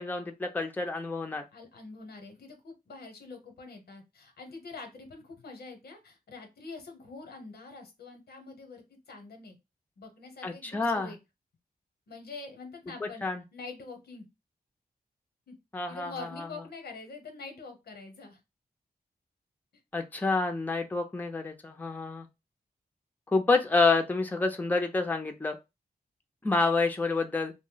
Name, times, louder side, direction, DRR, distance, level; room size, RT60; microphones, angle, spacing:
voice 1, 0.0-1.4 10.4-11.1 13.0-13.4 15.7-16.5 19.9-22.3 23.3-25.6 26.4-27.5, left 3 dB, 10° left, 4 dB, 0.5 m, -28 dB
voice 2, 1.5-9.6 10.0-11.2 12.1-13.2 13.5-14.3 15.5-15.6 15.9-18.4, left 3 dB, 90° left, 4 dB, 0.9 m, -45 dB
2.6 x 2.1 x 3.8 m, 0.23 s
wide cardioid pair, 90°, 16 cm